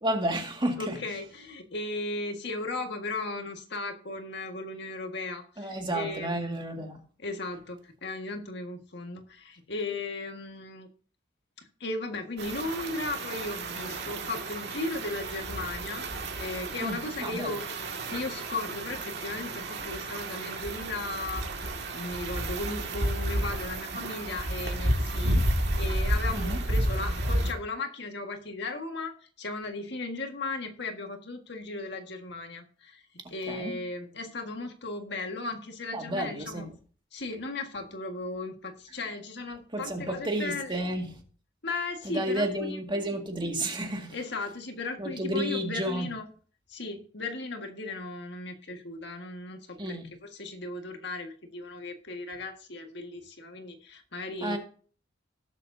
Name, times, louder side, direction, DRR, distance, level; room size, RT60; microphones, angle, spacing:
voice 1, 0.0-1.0 5.6-7.0 16.8-17.5 26.3-26.6 33.5-33.8 35.9-36.7 39.7-41.2 42.0-44.2 45.0-46.1 49.8-50.1 54.4-54.6, right 1 dB, 25° right, 2.0 m, -31 dB
voice 2, 0.8-6.4 7.2-10.9 11.6-16.1 16.4-17.7 18.1-21.4 21.9-33.0 33.3-36.7 37.1-40.8 41.6-42.8 44.1-46.3 46.7-54.6, left 2 dB, 65° left, 1.7 m, -36 dB
sound 1, 12.4-27.5, right 1 dB, 60° right, 2.0 m, -31 dB
18.5 x 7.4 x 2.7 m
head